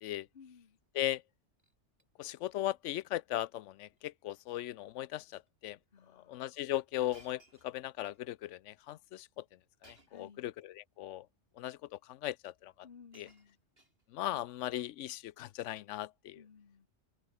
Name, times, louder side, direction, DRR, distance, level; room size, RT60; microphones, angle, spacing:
voice 1, 0.3-0.8 5.9-6.6 10.1-10.5 12.8-13.6 16.3-16.9, left 6 dB, 55° left, 1.5 m, -57 dB
Shatter, 0.8-1.2 1.6-2.1 2.4-2.6 2.9-3.0 3.9-4.1 4.4-4.7 5.5-5.6 7.1-8.2 9.8-10.3 11.3-11.4 12.5-12.6 12.8-14.3 15.3-15.6, right 1 dB, 55° right, 6.7 m, -64 dB
voice 2, 2.2-5.8 6.1-9.4 9.8-11.3 11.6-12.7 13.1-13.3 14.1-16.4, left 14 dB, 85° left, 0.9 m, -38 dB
omnidirectional pair, 1.2 m